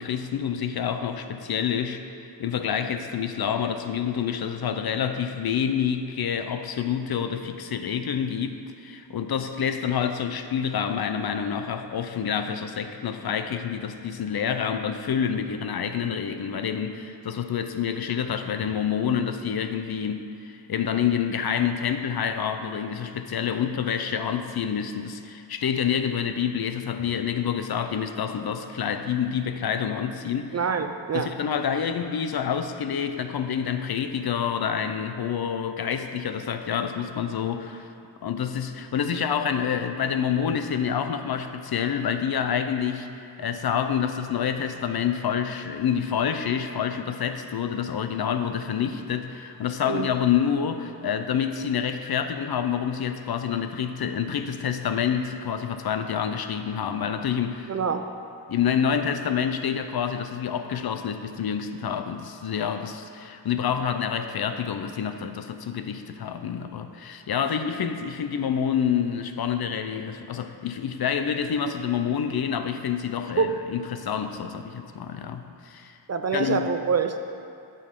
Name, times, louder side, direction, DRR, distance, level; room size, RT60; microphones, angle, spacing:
voice 1, 0.0-30.6 31.1-37.9 38.2-43.1 43.4-57.8 58.5-76.0 76.3-76.7, left 8 dB, 55° left, 8 dB, 0.6 m, -27 dB
voice 2, 30.5-31.3 49.9-50.1 57.7-58.1 73.4-73.5 76.1-77.2, right 6 dB, 40° right, 7 dB, 0.4 m, -25 dB
13.5 x 5.4 x 3.7 m, 2.6 s
wide cardioid pair, 105°, 45 cm